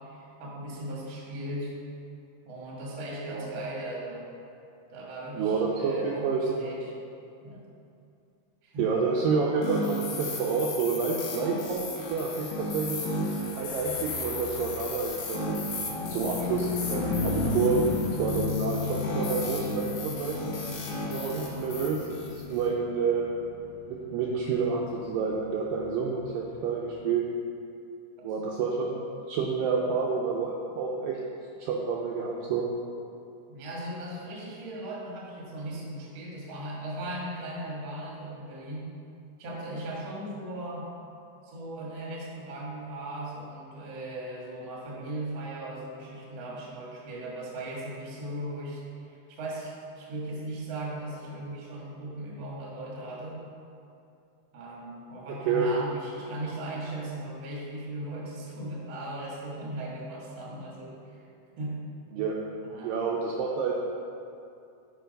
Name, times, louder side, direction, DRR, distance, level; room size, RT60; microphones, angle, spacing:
voice 1, 0.1-1.7 2.4-4.3 4.9-6.8 7.4-7.6 8.6-8.9 21.3-21.6 33.5-38.9 39.4-40.9 41.4-53.4 54.5-61.3 61.6-61.8 62.6-63.1, right 1 dB, 60° right, -4 dB, 1.3 m, -38 dB
voice 2, 5.3-6.7 8.8-11.8 12.1-13.0 13.6-15.6 16.1-17.8 18.2-20.6 21.1-23.3 23.9-27.2 28.2-31.2 31.6-32.7 55.3-55.7 62.1-62.4 62.8-63.7, right 5 dB, 80° right, -2 dB, 2.0 m, -29 dB
sound 1, 9.6-22.7, left 1 dB, 65° left, 2.4 m, -35 dB
Car passing by / Truck, 13.0-26.7, left 4 dB, 80° left, 2.1 m, -35 dB
6.9 x 5.1 x 5.2 m, 2.6 s
omnidirectional pair, 4.6 m